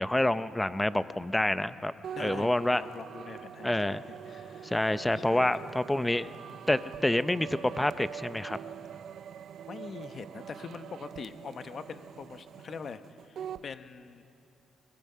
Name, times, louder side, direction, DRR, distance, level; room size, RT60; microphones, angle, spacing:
voice 1, 0.0-1.9 2.2-2.8 3.6-4.0 4.6-6.3 6.7-8.6, left 1 dB, 10° left, 13 dB, 0.6 m, -27 dB
sound 1, 2.0-13.7, right 9 dB, 65° right, 0.5 m, -44 dB
voice 2, 2.1-3.8 4.2-4.9 5.1-5.7 9.7-14.2, left 5 dB, 50° left, 10 dB, 1.0 m, -44 dB
22.5 x 21.5 x 5.7 m, 2.8 s
cardioid pair, 90°, 0 cm